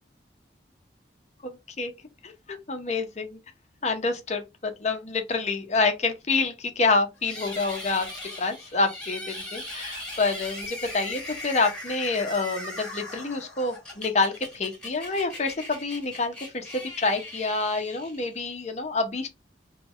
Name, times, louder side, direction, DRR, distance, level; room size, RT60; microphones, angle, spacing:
voice 1, 1.4-1.9 2.2-3.4 3.8-8.1 8.4-19.3, left 3 dB, 40° left, 0.8 m, -27 dB
sound 1, 7.2-18.5, left 1 dB, 5° left, 2.1 m, -39 dB
3.3 x 3.1 x 3.6 m
head